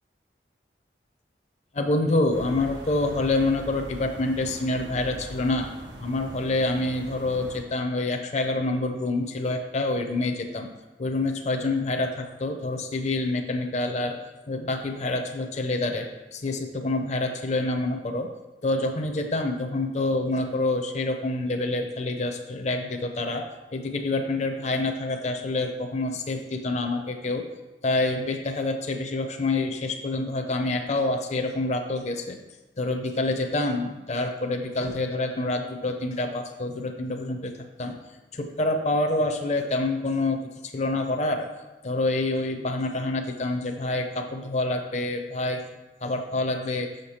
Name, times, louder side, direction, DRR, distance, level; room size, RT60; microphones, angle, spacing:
voice 1, 1.7-5.7 6.0-10.7 11.0-14.1 14.5-18.3 18.6-23.4 23.7-27.5 27.8-32.4 32.8-37.5 37.8-37.9 38.3-40.4 40.7-41.5 41.8-45.6 46.0-46.9, left 2 dB, 40° left, 4 dB, 0.6 m, -27 dB
sound 1, 2.3-7.6, equal, 90° right, 1.3 m, -41 dB
6.5 x 6.3 x 4.2 m, 1.1 s
head